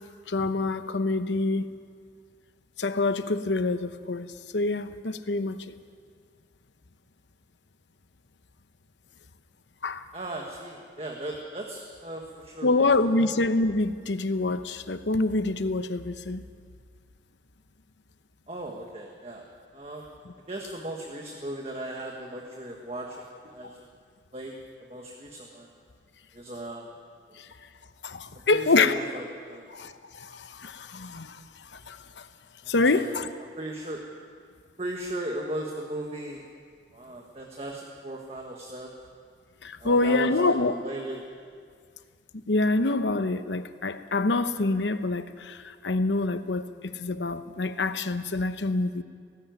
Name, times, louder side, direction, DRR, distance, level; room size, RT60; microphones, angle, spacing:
voice 1, 0.3-1.7 2.8-5.6 9.8-10.0 12.6-16.4 20.2-20.3 23.6-23.7 27.4-27.5 28.0-29.0 29.7-32.3 32.7-33.3 39.6-40.8 42.3-49.0, left 3 dB, 85° left, 11 dB, 0.9 m, -26 dB
voice 2, 10.1-13.3 18.5-19.4 19.7-20.1 20.5-23.9 24.3-24.6 24.9-25.7 26.3-26.9 28.5-29.7 32.9-33.2 33.6-34.0 34.8-36.4 36.9-38.9 39.8-41.2, right 1 dB, 35° right, 0 dB, 1.6 m, -37 dB
18.0 x 15.5 x 9.4 m, 2.1 s
head